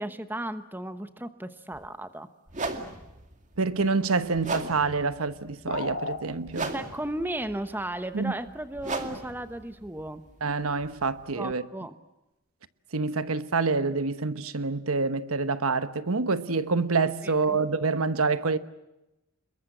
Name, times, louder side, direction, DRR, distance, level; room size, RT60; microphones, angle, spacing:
voice 1, 0.0-2.3 6.7-10.2 11.4-11.9 17.2-17.3, right 1 dB, 10° right, 1.0 m, -35 dB
sound 1, 1.7-1.9 2.5-11.3, right 3 dB, 35° right, 2.3 m, -38 dB
voice 2, 3.6-6.7 8.1-8.3 10.4-11.6 12.9-18.6, right 4 dB, 75° right, 1.1 m, -27 dB
sound 2, 5.7-6.2, left 3 dB, 65° left, 2.5 m, -32 dB
29.0 x 22.0 x 7.8 m
head